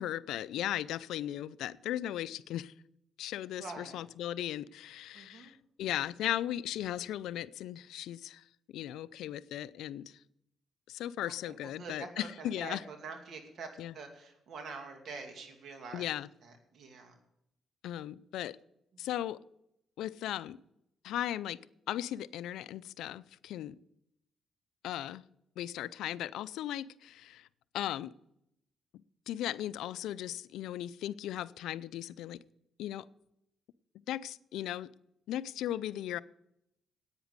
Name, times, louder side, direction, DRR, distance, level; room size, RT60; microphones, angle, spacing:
voice 1, 0.0-2.7 3.2-10.2 10.9-12.8 13.8-13.9 15.9-16.3 17.8-18.6 19.0-19.4 20.0-20.6 21.0-21.6 21.9-23.8 24.8-25.2 25.6-27.5 27.7-28.1 29.3-32.4 32.8-33.1 34.1-34.9 35.3-36.2, left 12 dB, 85° left, 0.4 m, -37 dB
voice 2, 3.6-4.0 5.1-5.5 11.2-17.2 18.9-19.0, right 4 dB, 65° right, 2.4 m, -46 dB
10.0 x 9.0 x 8.1 m
cardioid pair, 90°, 0 cm